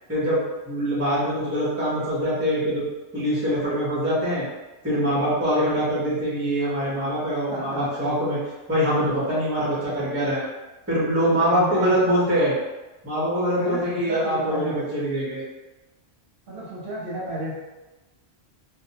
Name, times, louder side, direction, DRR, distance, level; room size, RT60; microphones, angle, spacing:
voice 1, 0.1-2.8 3.1-4.4 4.8-8.4 8.7-10.5 10.9-12.5 13.0-15.4, equal, 15° right, -8 dB, 0.7 m, -23 dB
voice 2, 7.5-8.1 11.2-11.9 13.5-14.8 16.5-17.5, right 1 dB, 60° right, -7 dB, 0.8 m, -32 dB
2.2 x 2.0 x 2.7 m, 1.1 s
omnidirectional pair, 1.1 m